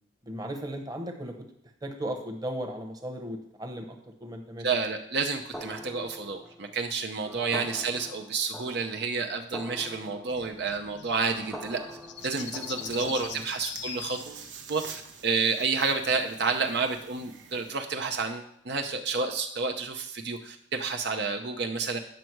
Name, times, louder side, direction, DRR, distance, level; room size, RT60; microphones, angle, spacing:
voice 1, 0.2-1.3 1.8-4.7 7.3-7.6 12.8-13.4, equal, 20° right, 3 dB, 1.1 m, -37 dB
voice 2, 4.6-11.8 12.2-14.4 14.7-22.0, right 4 dB, 60° right, 3 dB, 0.7 m, -30 dB
sound 1, 5.5-13.3, equal, ahead, 0.7 m, -44 dB
sound 2, 10.3-15.8, left 9 dB, 70° left, 0.7 m, -43 dB
sound 3, 12.2-17.7, right 6 dB, 85° right, 1.0 m, -47 dB
9.2 x 6.3 x 4.6 m, 0.72 s
head